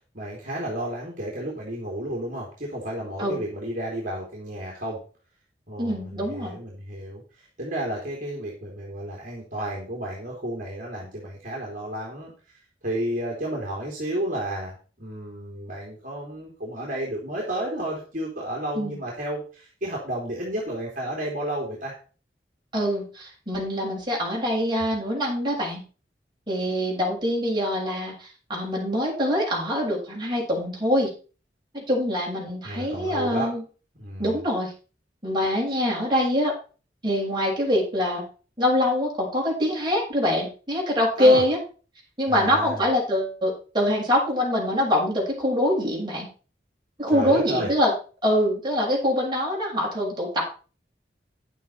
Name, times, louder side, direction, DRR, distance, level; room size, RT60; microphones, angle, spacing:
voice 1, 0.1-5.0 5.7-7.2 7.6-12.3 12.8-21.9 32.6-33.5 34.0-34.4 41.2-41.4 42.3-42.8 47.1-47.7, right 1 dB, 50° right, -2 dB, 3.4 m, -32 dB
voice 2, 5.8-6.5 18.7-19.0 22.7-25.8 26.5-31.1 31.7-33.6 34.2-34.7 35.2-36.5 37.0-38.2 38.6-41.6 42.2-46.3 47.0-47.9 48.2-50.5, left 1 dB, 25° right, -3 dB, 6.2 m, -24 dB
11.0 x 9.1 x 4.6 m, 0.36 s
head